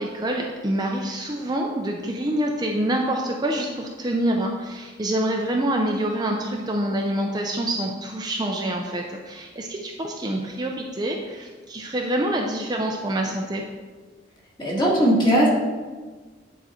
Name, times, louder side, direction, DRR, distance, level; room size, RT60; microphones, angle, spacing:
voice 1, 0.0-13.7, right 1 dB, 20° right, 0 dB, 0.5 m, -26 dB
voice 2, 14.6-15.5, right 1 dB, 25° left, -4 dB, 1.8 m, -18 dB
9.5 x 4.1 x 4.3 m, 1.4 s
head